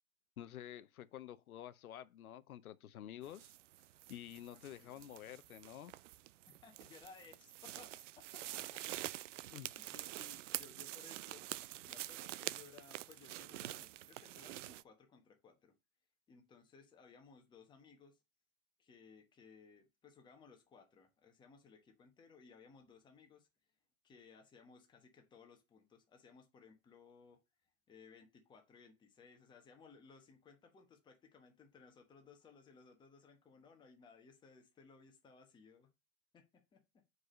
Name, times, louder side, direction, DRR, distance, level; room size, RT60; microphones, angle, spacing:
voice 1, 0.4-3.5 4.1-5.9 9.5-9.7, left 11 dB, 85° left, 0.8 m, -50 dB
sound 1, 3.2-14.8, right 15 dB, 60° right, 0.5 m, -47 dB
voice 2, 6.6-9.2 9.7-11.4 11.8-15.7 16.3-18.2 18.8-23.5 24.0-27.4 27.9-35.9 36.3-37.0, left 5 dB, 10° left, 1.1 m, -61 dB
4.8 x 4.8 x 6.2 m
hypercardioid pair, 150°, 42 cm